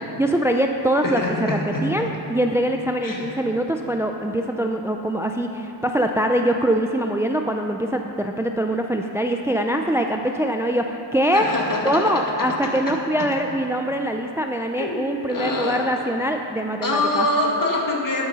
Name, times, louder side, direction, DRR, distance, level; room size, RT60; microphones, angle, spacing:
voice 1, 0.2-11.5 11.8-17.2, right 1 dB, 5° right, 4 dB, 0.5 m, -23 dB
voice 2, 1.0-2.2 3.0-3.3 11.3-13.3 14.8-15.0 15.3-15.9 16.8-18.3, left 2 dB, 45° left, 0 dB, 1.9 m, -25 dB
11.5 x 8.9 x 5.5 m, 3.0 s
wide cardioid pair, 60°, 46 cm